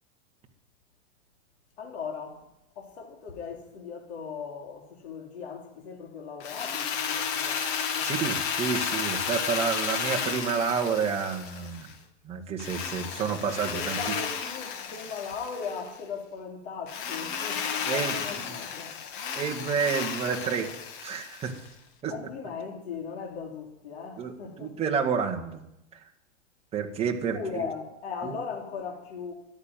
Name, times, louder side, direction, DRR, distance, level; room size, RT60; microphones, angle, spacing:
voice 1, 1.8-2.5 2.7-7.7 7.9-8.3 13.6-19.0 22.1-24.7 27.2-29.3, left 5 dB, 60° left, 3.2 m, -38 dB
Drill, 6.4-11.9 12.6-15.9 16.9-21.7, left 7 dB, 40° left, 1.9 m, -33 dB
voice 2, 8.0-11.9 12.2-14.0 17.8-18.6 19.3-20.7 21.0-21.6 22.0-22.1 24.2-25.6 25.9-26.1 26.7-27.6 28.2-28.4, right 6 dB, 15° right, 1.7 m, -30 dB
13.5 x 11.0 x 9.1 m
hypercardioid pair, 150°, 37 cm